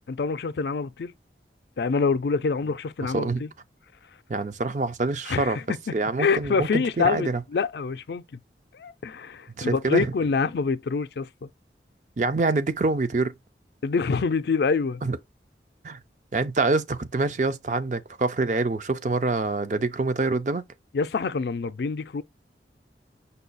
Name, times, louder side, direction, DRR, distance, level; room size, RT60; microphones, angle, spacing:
voice 1, 0.1-1.1 1.8-3.5 5.3-5.6 6.2-8.4 8.7-11.5 13.8-15.0 20.9-22.2, left 4 dB, 70° left, 0.4 m, -26 dB
voice 2, 3.0-3.4 4.3-5.6 5.9-7.4 9.6-10.1 12.2-13.3 15.0-15.2 15.8-16.0 16.3-20.6, right 3 dB, 45° right, 0.5 m, -26 dB
5.4 x 2.3 x 3.9 m
head